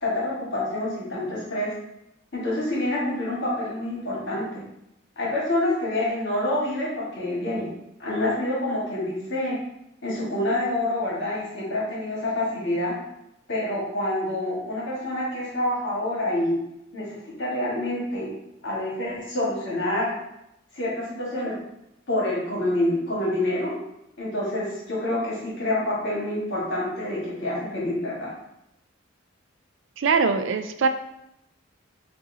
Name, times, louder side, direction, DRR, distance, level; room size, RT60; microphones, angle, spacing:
voice 1, 0.0-1.7 2.3-4.6 5.2-7.7 8.0-9.6 10.0-13.0 13.5-16.6 16.9-18.3 18.6-20.1 20.7-21.5 22.1-23.7 24.2-28.3, left 1 dB, 55° left, -5 dB, 1.6 m, -27 dB
voice 2, 30.0-30.9, right 5 dB, 65° right, 9 dB, 0.4 m, -22 dB
7.3 x 2.6 x 2.8 m, 0.84 s
head